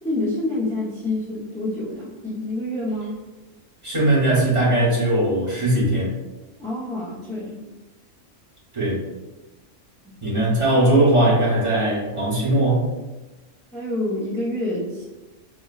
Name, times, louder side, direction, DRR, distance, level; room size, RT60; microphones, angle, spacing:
voice 1, 0.0-3.2 6.6-7.6 13.7-15.1, left 1 dB, 10° left, -8 dB, 0.4 m, -27 dB
voice 2, 3.8-6.1 8.7-9.0 10.2-12.9, right 1 dB, 30° right, -6 dB, 0.9 m, -19 dB
5.0 x 2.2 x 2.3 m, 1.1 s
omnidirectional pair, 1.3 m